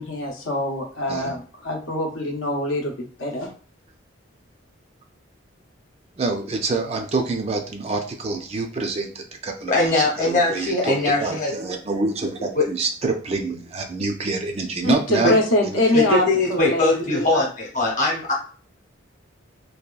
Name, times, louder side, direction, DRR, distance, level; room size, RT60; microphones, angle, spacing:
voice 1, 0.0-2.9 3.2-3.5 14.8-17.4, left 1 dB, 80° left, 1 dB, 0.6 m, -24 dB
voice 2, 6.2-15.3 15.7-15.8, right 3 dB, 30° right, 4 dB, 0.3 m, -26 dB
voice 3, 9.7-11.5 15.9-18.3, left 2 dB, 40° left, -2 dB, 0.9 m, -21 dB
2.8 x 2.2 x 2.2 m, 0.41 s
head